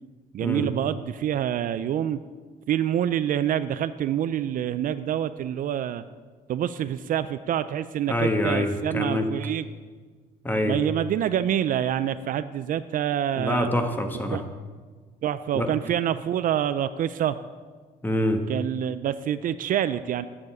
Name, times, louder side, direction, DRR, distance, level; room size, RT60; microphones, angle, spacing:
voice 1, 0.3-2.2 2.7-6.0 6.5-9.7 10.6-13.7 14.3-14.4 15.2-17.4 18.5-20.3, right 10 dB, 55° right, 13 dB, 0.5 m, -26 dB
voice 2, 8.1-9.3 10.4-10.8 13.3-14.4 15.5-15.7 18.0-18.4, left 1 dB, 10° left, 5 dB, 1.4 m, -25 dB
9.5 x 7.3 x 8.6 m, 1.5 s
cardioid pair, 110°, 17 cm